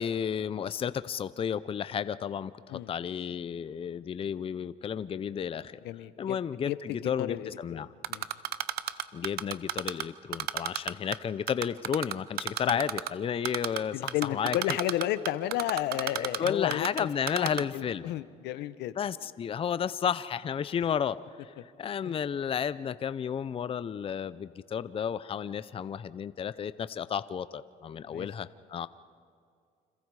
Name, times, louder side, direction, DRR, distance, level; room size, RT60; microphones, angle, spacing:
voice 1, 0.0-5.8 6.2-7.9 9.1-14.8 16.1-18.1 19.0-21.2 21.4-28.9, left 8 dB, 35° left, 15 dB, 0.6 m, -32 dB
voice 2, 5.8-6.4 6.7-8.3 12.6-12.8 13.9-19.0 22.0-22.1 28.1-28.3, left 13 dB, 85° left, 14 dB, 0.9 m, -33 dB
Typing, 8.0-10.0 10.3-11.2 11.5-13.1 13.4-13.8 14.1-17.0 17.3-17.6, right 13 dB, 70° right, 0.9 m, -31 dB
28.5 x 27.0 x 4.8 m, 2.3 s
cardioid pair, 110°, 17 cm